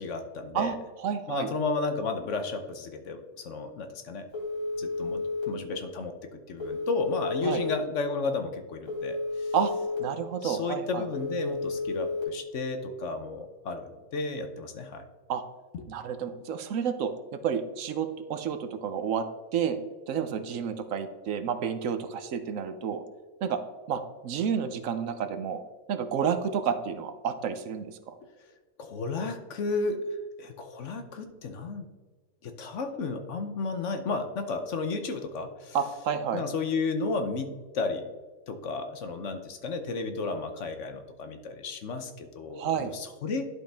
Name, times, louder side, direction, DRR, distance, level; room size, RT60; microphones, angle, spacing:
voice 1, 0.0-0.8 1.3-4.3 4.8-9.5 10.4-15.1 15.7-15.8 28.8-30.0 30.4-31.8 32.4-35.8 36.3-38.1 38.5-43.4, left 4 dB, 60° left, 7 dB, 1.1 m, -33 dB
voice 2, 0.5-1.5 7.4-7.6 9.5-9.7 10.0-11.1 15.3-15.4 15.9-19.2 19.5-19.8 20.1-23.0 23.4-23.6 23.9-25.6 25.9-28.1 35.7-36.4 42.6-42.9, right 7 dB, 70° right, 9 dB, 1.0 m, -30 dB
Telephone, 4.3-5.4 6.6-7.7 8.9-10.0 11.1-12.2, left 2 dB, 20° left, 2.2 m, -32 dB
11.5 x 5.2 x 3.4 m, 1.3 s
omnidirectional pair, 1.5 m